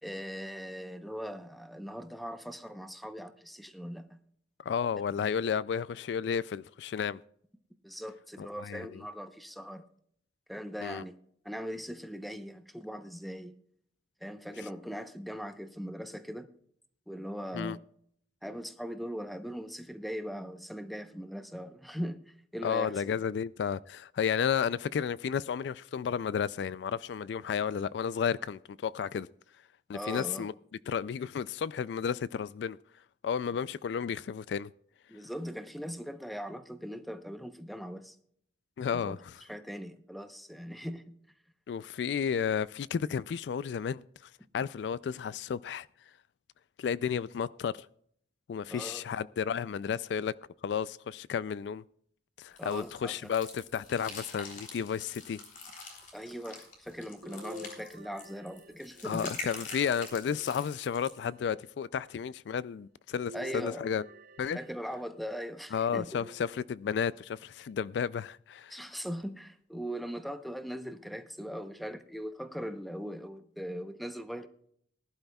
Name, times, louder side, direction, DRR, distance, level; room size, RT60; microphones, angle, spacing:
voice 1, 0.0-4.2 7.8-9.8 10.5-11.2 11.4-13.5 14.2-16.5 17.1-17.8 18.4-23.0 29.9-30.5 35.1-38.2 38.9-39.2 39.5-41.2 48.7-49.0 52.6-53.3 56.1-59.3 63.3-63.9 64.5-66.2 68.7-74.5, equal, ahead, 0.8 m, -40 dB
voice 2, 4.6-7.2 8.4-9.0 10.8-11.0 17.5-17.8 22.6-29.3 29.9-30.5 30.9-32.8 33.2-34.7 38.8-39.4 41.7-45.9 46.8-47.9 48.5-50.3 50.6-51.8 52.4-55.4 59.0-64.1 64.4-64.6 65.7-68.8, left 7 dB, 70° left, 0.3 m, -32 dB
sound 1, 52.6-61.3, left 3 dB, 50° left, 3.4 m, -45 dB
sound 2, 57.2-59.5 60.2-61.2 63.2-65.3 66.2-67.1 67.7-67.8 69.2-69.3, equal, 50° right, 0.6 m, -50 dB
19.5 x 11.5 x 2.3 m
head